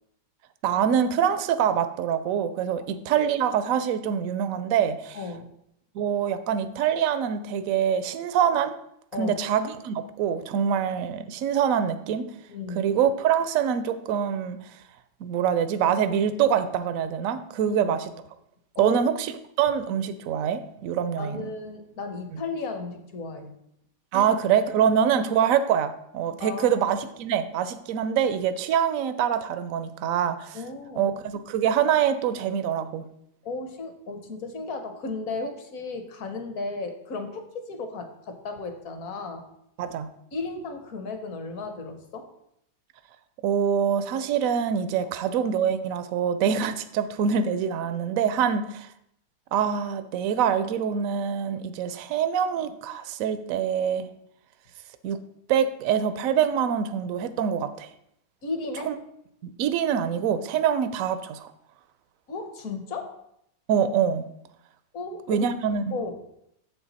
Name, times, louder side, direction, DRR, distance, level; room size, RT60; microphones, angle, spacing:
voice 1, 0.6-5.2 5.9-8.8 9.2-12.3 12.8-14.6 15.2-18.1 18.8-19.3 19.6-21.4 22.3-22.4 24.1-30.6 31.0-31.1 31.5-33.0 39.8-40.1 43.4-48.9 49.5-54.1 55.0-55.2 55.5-57.9 58.8-58.9 59.4-61.5 63.7-64.3 65.3-65.9, right 8 dB, 75° right, 12 dB, 0.7 m, -25 dB
voice 2, 5.1-5.5 9.1-9.4 12.5-12.9 17.6-17.8 18.7-19.1 21.2-23.5 24.1-24.3 26.4-26.8 30.5-31.1 33.4-39.4 40.3-42.3 58.4-58.9 62.3-63.1 64.9-65.4 65.9-66.2, left 3 dB, 55° left, 7 dB, 1.2 m, -34 dB
7.5 x 5.9 x 4.1 m, 0.77 s
omnidirectional pair, 1.9 m